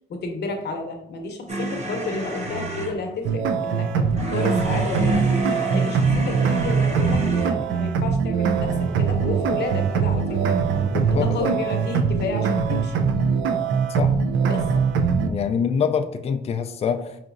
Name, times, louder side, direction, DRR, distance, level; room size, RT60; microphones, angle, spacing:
voice 1, 0.1-10.6 11.1-13.1 14.4-14.7, left 3 dB, 60° left, 4 dB, 0.8 m, -31 dB
sound 1, 1.5-3.0 4.1-7.6 8.6-11.6, right 1 dB, 35° right, 0.8 m, -31 dB
sound 2, 3.2-15.3, right 6 dB, 75° right, 0.4 m, -22 dB
voice 2, 10.9-11.4 14.0-14.1 15.3-17.2, left 6 dB, 30° left, 7 dB, 0.3 m, -25 dB
5.0 x 2.8 x 2.5 m, 0.81 s
cardioid pair, 90°, 20 cm